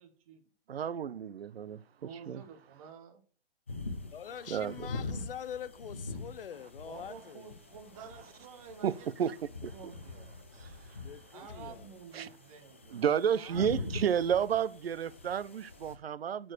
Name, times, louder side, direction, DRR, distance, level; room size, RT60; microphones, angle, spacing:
voice 1, 0.0-0.4 2.0-3.2 6.8-10.3 11.3-13.0 13.3-13.9, right 6 dB, 35° right, 1.1 m, -50 dB
voice 2, 0.7-1.8 2.3-2.4 4.5-4.9 8.8-8.9 9.2-9.3 9.6-9.7 10.6-10.7 12.1-12.3 12.9-16.5, right 8 dB, 70° right, 0.7 m, -31 dB
sound 1, 3.7-16.0, left 3 dB, 15° left, 0.3 m, -44 dB
voice 3, 4.1-7.5 11.0-11.9, left 9 dB, 60° left, 0.7 m, -44 dB
8.6 x 4.5 x 6.5 m
hypercardioid pair, 140°, 32 cm